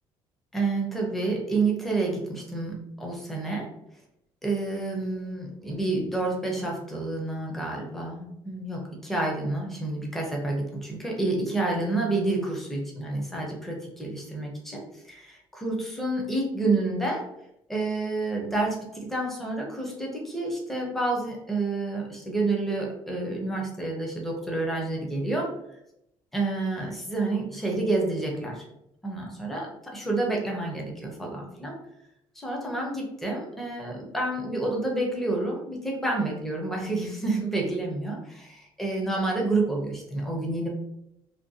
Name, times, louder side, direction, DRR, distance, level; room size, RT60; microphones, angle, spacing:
voice 1, 0.5-3.7 4.4-17.2 17.7-25.5 26.3-28.6 29.0-31.8 32.4-40.7, right 2 dB, 5° left, -1 dB, 0.5 m, -29 dB
2.5 x 2.2 x 2.6 m, 0.82 s
cardioid pair, 170°, 10 cm